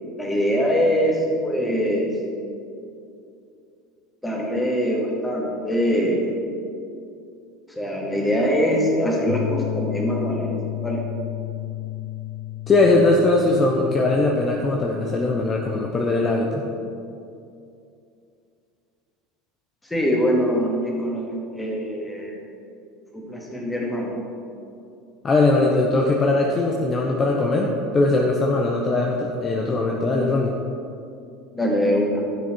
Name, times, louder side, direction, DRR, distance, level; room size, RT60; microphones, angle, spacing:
voice 1, 0.2-2.1 4.2-6.3 7.7-10.5 10.8-11.0 19.9-22.4 23.1-24.1 31.5-32.2, equal, 10° left, -2 dB, 2.3 m, -23 dB
sound 1, 9.3-15.9, left 16 dB, 65° left, 0.5 m, -32 dB
voice 2, 12.7-16.7 25.2-30.5, left 2 dB, 30° left, 0 dB, 1.0 m, -20 dB
12.0 x 6.6 x 4.6 m, 2.6 s
figure-of-eight pair, 75°, 0 cm